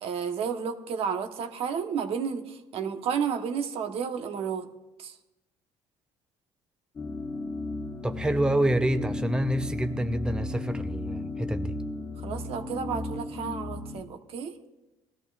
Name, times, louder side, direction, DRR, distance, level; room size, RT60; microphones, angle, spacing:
voice 1, 0.0-4.7 5.0-5.1 12.2-14.5, right 7 dB, 65° right, 6 dB, 1.1 m, -32 dB
sound 1, 7.0-14.0, left 2 dB, 35° left, 1.2 m, -34 dB
voice 2, 8.0-11.7, right 1 dB, 10° right, 8 dB, 0.7 m, -27 dB
19.0 x 13.5 x 2.5 m, 0.98 s
cardioid pair, 90°, 11 cm